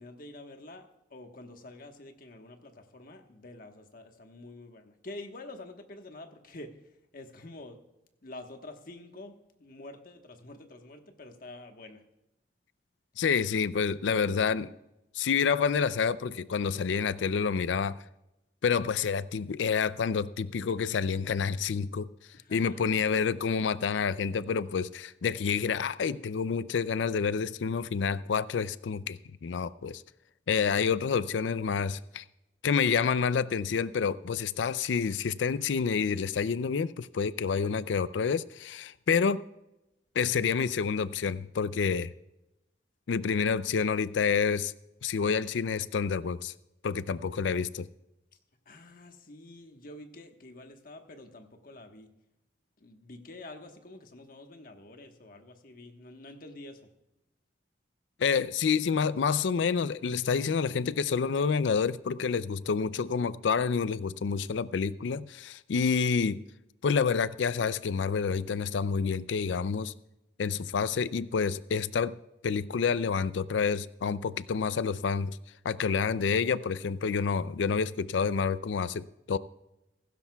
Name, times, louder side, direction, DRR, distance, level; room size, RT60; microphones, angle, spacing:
voice 1, 0.0-6.7 7.1-7.8 8.2-12.0 22.3-22.8 48.6-52.1 52.8-56.9, left 2 dB, 50° left, 1.2 m, -47 dB
voice 2, 13.2-14.7 15.1-18.0 18.6-22.1 22.5-30.0 30.5-32.2 32.6-39.5 40.2-42.1 43.1-44.7 45.0-46.5 46.8-47.9 58.2-66.4 66.8-69.9 70.4-72.2 72.4-75.4 75.6-79.4, left 6 dB, 80° left, 0.4 m, -28 dB
16.5 x 15.5 x 2.3 m
head